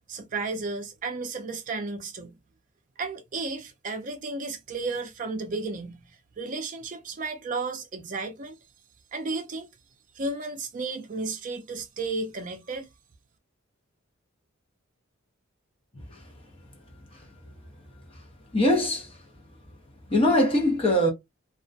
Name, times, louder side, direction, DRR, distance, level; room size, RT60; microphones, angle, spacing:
voice 1, 0.1-2.3 3.0-6.0 6.4-8.6 9.1-9.7 10.1-12.9, right 3 dB, 40° right, 0.4 m, -33 dB
voice 2, 18.5-19.2 20.1-21.1, left 1 dB, 25° left, 0.7 m, -22 dB
2.3 x 2.1 x 2.5 m
head